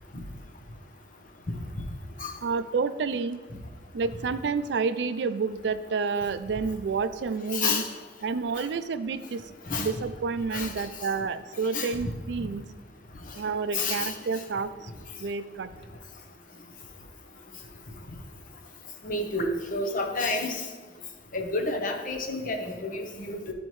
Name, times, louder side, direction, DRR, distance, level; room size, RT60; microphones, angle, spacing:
voice 1, 2.4-3.4 3.9-7.8 8.2-9.5 9.8-12.6 13.3-14.9 15.2-15.7, right 5 dB, 75° right, 12 dB, 0.4 m, -29 dB
voice 2, 7.5-7.9 8.6-8.7 9.7-9.9 10.5-10.7 11.7-11.9 13.7-14.1 19.0-20.6 21.3-23.5, left 3 dB, 50° left, 4 dB, 0.8 m, -29 dB
12.0 x 4.2 x 3.1 m, 1.4 s
head